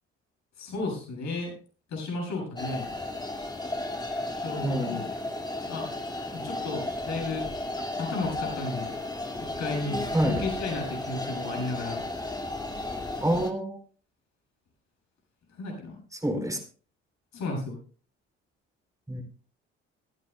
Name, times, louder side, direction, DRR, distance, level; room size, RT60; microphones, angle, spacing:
voice 1, 0.6-1.5 1.9-2.9 4.4-5.1 5.7-5.9 6.3-7.4 8.0-8.9 9.6-12.0 15.5-16.0 17.3-17.8, left 3 dB, 65° left, 1 dB, 7.7 m, -33 dB
sound 1, 2.6-13.5, left 2 dB, 15° left, 2.2 m, -34 dB
voice 2, 4.6-5.0 10.1-10.4 13.2-13.8 16.1-16.6 19.1-19.2, right 1 dB, 10° right, 6 dB, 4.1 m, -27 dB
25.0 x 9.8 x 2.3 m, 0.38 s
hypercardioid pair, 60°, 30 cm